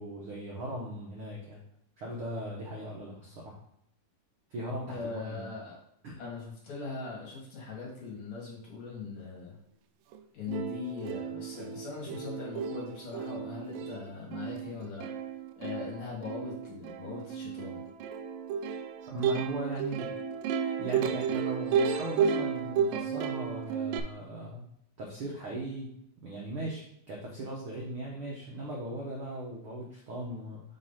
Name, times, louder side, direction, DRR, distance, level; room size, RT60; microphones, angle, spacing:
voice 1, 0.0-1.6 2.0-3.5 4.5-5.5 6.0-6.2 19.1-20.1 20.5-24.6 25.0-25.9 26.2-30.6, right 1 dB, 65° right, -3 dB, 1.3 m, -38 dB
voice 2, 4.9-5.8 6.2-9.6 10.3-15.1 15.6-17.8, left 4 dB, 55° left, -4 dB, 2.9 m, -40 dB
Plucked string instrument, 10.1-10.2 10.5-24.0, right 7 dB, 85° right, 2.2 m, -33 dB
6.1 x 3.2 x 5.6 m, 0.75 s
omnidirectional pair, 3.9 m